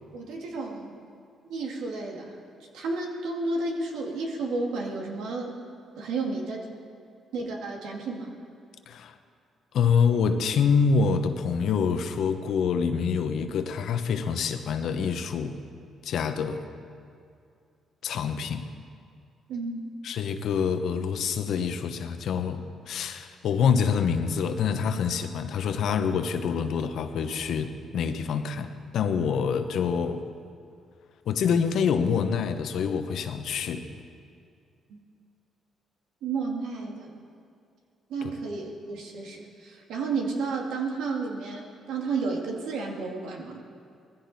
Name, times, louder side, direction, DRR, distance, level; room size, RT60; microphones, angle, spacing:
voice 1, 0.1-0.9 1.4-2.4 2.7-5.6 6.0-6.7 7.3-8.3 19.5-19.8 34.9-35.0 36.2-37.2 38.1-43.6, right 3 dB, 85° right, 0 dB, 2.3 m, -32 dB
voice 2, 9.7-15.6 16.0-16.6 18.0-18.7 20.0-30.2 31.3-33.9 38.2-38.3, left 6 dB, 70° left, 8 dB, 1.0 m, -26 dB
20.0 x 15.0 x 4.2 m, 2.4 s
cardioid pair, 90°, 0 cm